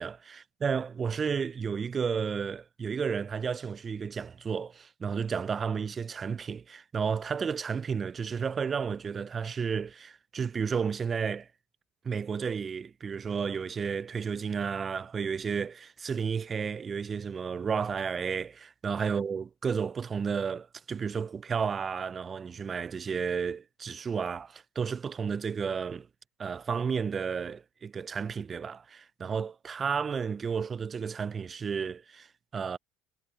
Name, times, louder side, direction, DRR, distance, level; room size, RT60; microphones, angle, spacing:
voice 1, 0.0-11.5 12.0-26.1 26.4-32.3 32.5-32.8, right 6 dB, 35° right, 0.5 m, -32 dB
hypercardioid pair, 80°, 0 cm